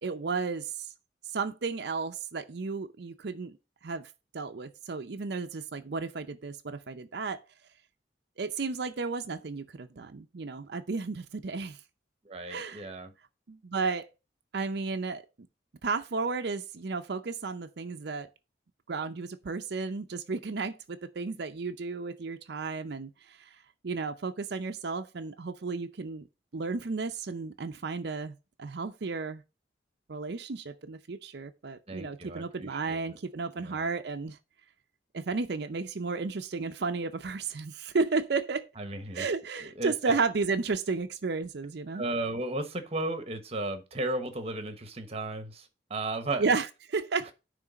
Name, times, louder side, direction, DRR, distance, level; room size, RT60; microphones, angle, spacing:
voice 1, 0.0-0.7 1.3-3.6 3.8-4.1 4.3-7.4 8.4-11.8 12.5-12.9 13.5-14.1 14.5-15.2 15.8-18.3 18.9-23.1 23.8-26.3 26.5-29.4 30.1-34.4 35.1-38.7 39.1-42.0 46.4-47.3, right 4 dB, 60° right, 0.5 m, -33 dB
voice 2, 12.2-13.1 31.9-33.2 33.6-33.8 38.8-39.3 39.6-40.1 41.9-46.5, right 2 dB, 35° right, 1.0 m, -35 dB
9.6 x 3.3 x 4.9 m
head